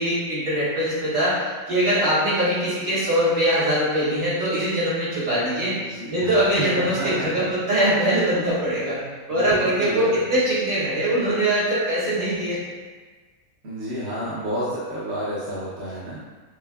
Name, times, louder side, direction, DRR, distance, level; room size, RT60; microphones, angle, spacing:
voice 1, 0.0-1.3 1.7-5.7 6.1-9.0 9.3-12.6, right 1 dB, 75° right, -11 dB, 2.1 m, -22 dB
voice 2, 5.7-7.5 9.3-10.2 13.6-16.2, equal, 60° right, -8 dB, 1.1 m, -30 dB
6.5 x 2.8 x 2.3 m, 1.4 s
omnidirectional pair, 1.4 m